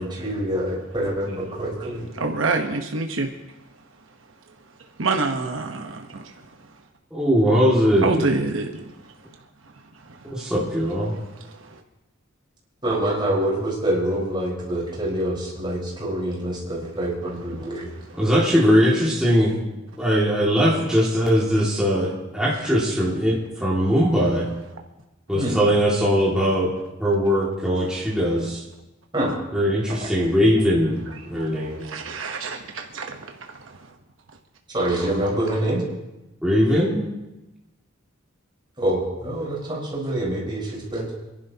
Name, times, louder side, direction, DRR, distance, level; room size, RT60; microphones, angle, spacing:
voice 1, 0.0-2.1 12.8-17.9 25.3-25.6 29.1-29.3 29.9-30.0 34.7-35.8 38.8-41.1, right 1 dB, 25° right, -4 dB, 4.5 m, -26 dB
voice 2, 2.2-3.3 5.0-6.0 8.0-8.7 31.9-33.1, right 3 dB, 70° right, 3 dB, 1.0 m, -25 dB
voice 3, 7.1-8.3 10.2-11.1 18.2-19.6 20.0-24.5 25.3-26.7 27.0-28.6 29.5-31.9 36.4-37.0, equal, 5° right, -6 dB, 2.2 m, -20 dB
28.0 x 11.0 x 2.9 m, 0.99 s
head